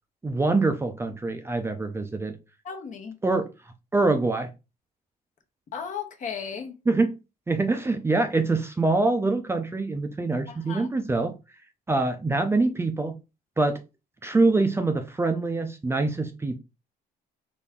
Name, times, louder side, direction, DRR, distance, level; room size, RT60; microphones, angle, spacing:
voice 1, 0.2-2.4 3.2-3.5 3.9-4.5 6.9-7.1 7.5-11.3 11.9-13.2 13.6-13.8 14.2-16.6, right 3 dB, 15° right, 0.5 m, -24 dB
voice 2, 2.6-3.1 5.7-6.8 10.5-10.9, left 7 dB, 50° left, 1.1 m, -35 dB
4.1 x 3.4 x 3.6 m
cardioid pair, 110°, 17 cm